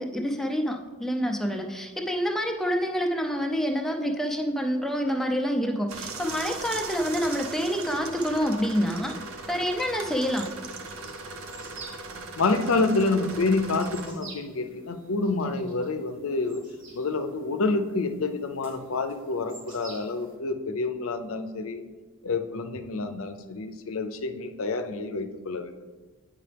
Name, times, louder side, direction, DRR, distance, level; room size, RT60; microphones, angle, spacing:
voice 1, 0.0-9.1 9.5-10.5, equal, ahead, 2 dB, 0.5 m, -27 dB
sound 1, 5.9-14.1, right 3 dB, 75° right, 0.6 m, -39 dB
sound 2, 9.4-20.4, right 3 dB, 60° right, 1.8 m, -51 dB
voice 2, 12.4-16.6 16.9-21.8 22.2-25.7, left 3 dB, 75° left, 8 dB, 0.6 m, -28 dB
8.7 x 4.9 x 3.4 m, 1.3 s
head